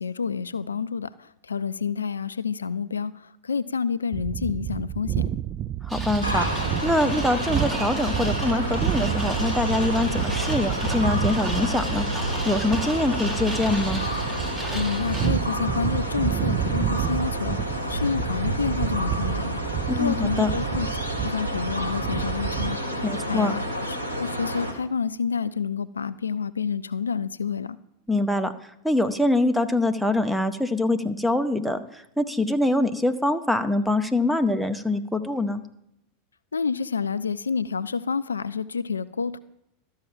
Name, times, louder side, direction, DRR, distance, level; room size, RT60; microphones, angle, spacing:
voice 1, 0.0-5.3 14.7-20.9 21.2-27.8 36.5-39.4, left 6 dB, 75° left, 15 dB, 0.4 m, -29 dB
sound 1, 4.1-22.8, right 11 dB, 35° right, 0.4 m, -30 dB
voice 2, 5.8-12.0 12.4-14.0 19.9-20.5 23.0-23.5 28.1-28.5 28.8-35.6, left 2 dB, ahead, 7 dB, 0.8 m, -24 dB
sound 2, 5.9-15.3, right 1 dB, 15° right, 2.1 m, -35 dB
sound 3, 6.2-24.7, equal, 90° right, 1.3 m, -30 dB
12.5 x 5.6 x 7.4 m, 0.83 s
figure-of-eight pair, 85°, 0 cm